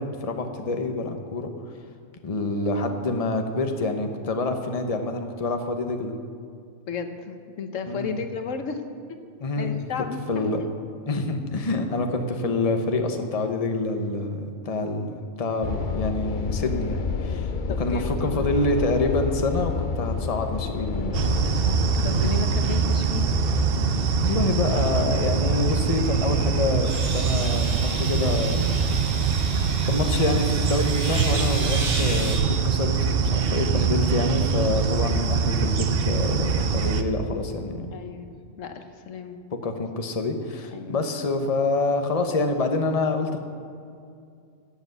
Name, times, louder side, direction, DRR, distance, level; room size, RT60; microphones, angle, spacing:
voice 1, 0.0-1.5 2.2-6.1 7.9-8.2 9.4-9.8 10.3-10.6 11.1-17.5 17.8-21.1 24.2-26.9 27.1-28.7 29.8-37.9 39.6-43.4, left 2 dB, 30° left, 5 dB, 1.0 m, -27 dB
voice 2, 6.9-8.8 9.1-9.2 9.5-10.5 17.7-18.5 22.0-23.3 37.9-38.3 38.6-39.4 40.7-41.0, left 5 dB, 80° left, 7 dB, 1.3 m, -33 dB
sound 1, 15.6-26.9, left 4 dB, 50° left, 0.6 m, -30 dB
sound 2, 21.1-37.0, right 6 dB, 55° right, 0.9 m, -23 dB
sound 3, 26.0-26.1 26.8-32.4, equal, 90° right, 4.4 m, -36 dB
13.0 x 8.1 x 8.0 m, 2.4 s
omnidirectional pair, 1.3 m